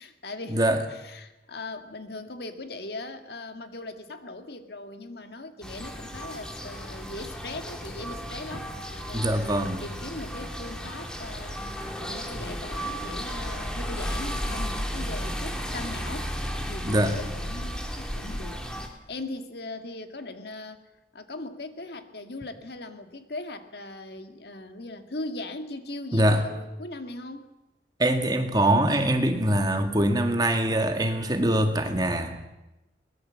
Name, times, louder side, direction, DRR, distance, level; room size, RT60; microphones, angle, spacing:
voice 1, 0.0-8.7 9.1-16.3 16.7-20.8 21.1-27.5, left 2 dB, 60° left, 7 dB, 1.9 m, -39 dB
sound 1, 5.6-18.9, equal, 5° left, 2.5 m, -34 dB
voice 2, 9.1-9.8 16.8-17.1 26.1-26.4 28.0-32.5, right 1 dB, 20° right, 6 dB, 1.9 m, -23 dB
22.0 x 20.0 x 7.6 m, 0.98 s
head